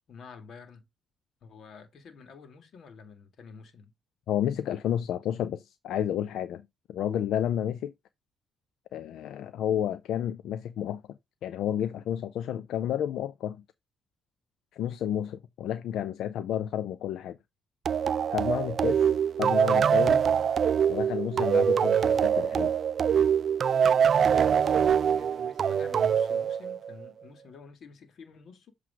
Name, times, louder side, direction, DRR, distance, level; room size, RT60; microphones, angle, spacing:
voice 1, 0.1-0.9 1.4-3.9 23.7-28.7, left 5 dB, 60° left, 1.9 m, -49 dB
voice 2, 4.3-6.6 6.9-7.9 8.9-11.0 11.4-13.6 14.7-17.4 18.3-19.0 19.4-20.2 20.9-22.7, left 10 dB, 80° left, 0.5 m, -31 dB
sound 1, 17.8-27.1, right 7 dB, 55° right, 0.4 m, -24 dB
7.7 x 3.2 x 4.9 m
cardioid pair, 90°, 0 cm